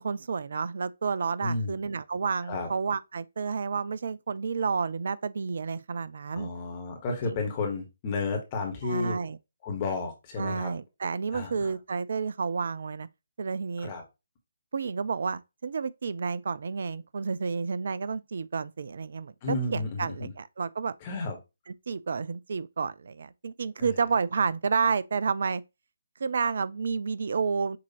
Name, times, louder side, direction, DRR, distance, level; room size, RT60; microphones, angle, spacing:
voice 1, 0.0-6.5 7.2-7.4 8.8-9.4 10.4-13.1 13.4-13.9 14.7-19.3 19.7-21.0 21.7-25.6 26.2-27.8, right 5 dB, 50° right, 0.3 m, -30 dB
voice 2, 1.4-1.8 2.5-2.7 6.3-9.2 9.6-10.7 11.3-11.7 13.8-14.0 19.4-20.3 21.0-21.4, left 3 dB, 25° left, 1.4 m, -32 dB
6.0 x 2.8 x 2.9 m
figure-of-eight pair, 140°, 0 cm